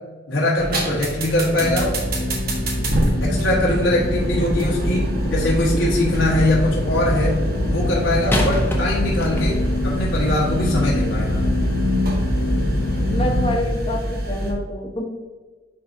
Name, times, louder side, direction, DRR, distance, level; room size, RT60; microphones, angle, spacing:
voice 1, 0.3-1.9 3.2-7.4 7.7-11.4, left 1 dB, 75° left, -6 dB, 1.5 m, -22 dB
sound 1, 0.6-14.5, right 1 dB, 55° right, 1.3 m, -26 dB
sound 2, 1.6-13.5, left 1 dB, 60° left, 0.8 m, -24 dB
sound 3, 5.1-5.9 8.3-9.8 10.6-10.8, left 1 dB, 10° left, 0.8 m, -27 dB
voice 2, 13.0-15.0, left 1 dB, 30° left, 1 dB, 1.1 m, -27 dB
10.5 x 3.9 x 2.7 m, 1.3 s
head